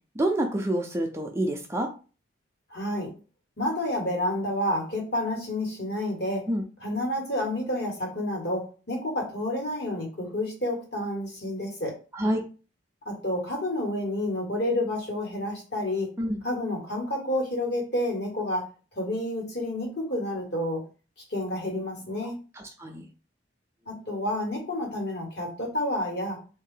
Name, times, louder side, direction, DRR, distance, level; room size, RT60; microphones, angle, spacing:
voice 1, 0.2-1.9 6.5-6.6 12.1-12.4 16.2-16.4 22.6-23.0, right 1 dB, 15° right, 2 dB, 0.4 m, -27 dB
voice 2, 2.7-3.1 3.6-6.5 6.8-12.0 13.0-16.1 16.4-18.7 18.9-20.8 21.3-22.4 23.9-26.4, left 1 dB, 55° left, 0 dB, 1.5 m, -29 dB
3.6 x 2.7 x 3.8 m, 0.35 s
head